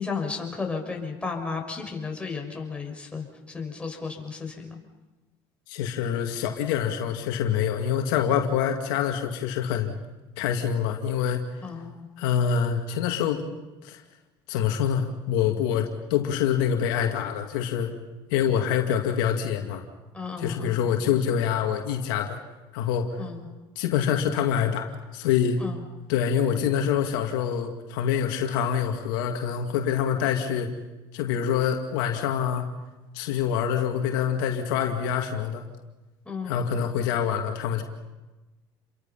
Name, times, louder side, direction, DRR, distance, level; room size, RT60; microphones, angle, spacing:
voice 1, 0.0-4.8 11.6-12.1 20.1-20.9 23.2-23.5 25.6-25.8 36.2-36.6, left 5 dB, 10° left, 1 dB, 6.4 m, -34 dB
voice 2, 5.7-9.9 10.4-11.7 12.2-13.4 13.8-14.0 14.5-17.9 18.3-19.8 20.4-22.4 22.7-23.1 23.8-25.6 26.1-30.7 31.1-32.7 33.1-35.6 36.4-37.8, left 8 dB, 85° left, 3 dB, 2.4 m, -26 dB
29.5 x 23.5 x 5.7 m, 1.1 s
supercardioid pair, 105°, 11 cm